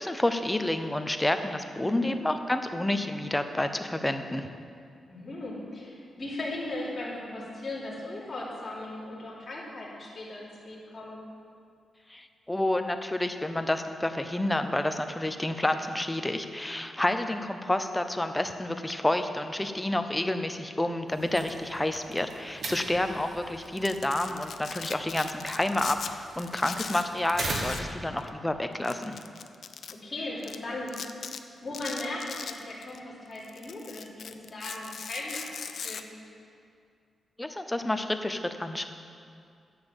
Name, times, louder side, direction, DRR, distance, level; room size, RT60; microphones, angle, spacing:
voice 1, 0.0-4.5 12.1-29.1 37.4-38.9, left 1 dB, 10° left, 7 dB, 0.6 m, -29 dB
voice 2, 1.8-2.2 5.1-11.2 29.9-31.0 31.6-36.2, left 2 dB, 30° left, -6 dB, 3.1 m, -38 dB
sound 1, 21.1-28.1, right 2 dB, 50° right, 1.4 m, -40 dB
Domestic sounds home sounds, 23.6-26.1 26.4-27.9 28.2-28.3 28.8-29.9 30.4-30.6 30.9-31.4 31.7-33.0 33.4-36.0, left 6 dB, 65° left, 0.5 m, -39 dB
10.5 x 7.2 x 7.2 m, 2.3 s
wide cardioid pair, 120°, 0 cm